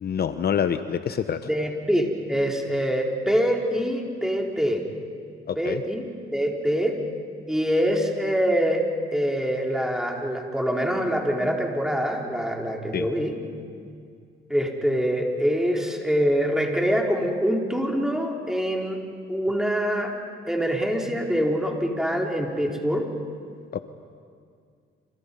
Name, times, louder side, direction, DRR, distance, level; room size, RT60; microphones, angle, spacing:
voice 1, 0.0-1.4 5.5-5.8 12.9-13.1 23.7-23.8, left 8 dB, 50° left, 10 dB, 1.0 m, -26 dB
voice 2, 1.5-4.8 5.6-7.0 7.5-8.8 9.1-13.3 14.5-19.0 19.3-20.1 20.5-23.1, equal, 5° right, 0 dB, 4.3 m, -24 dB
28.5 x 28.5 x 5.6 m, 2.2 s
cardioid pair, 90°, 20 cm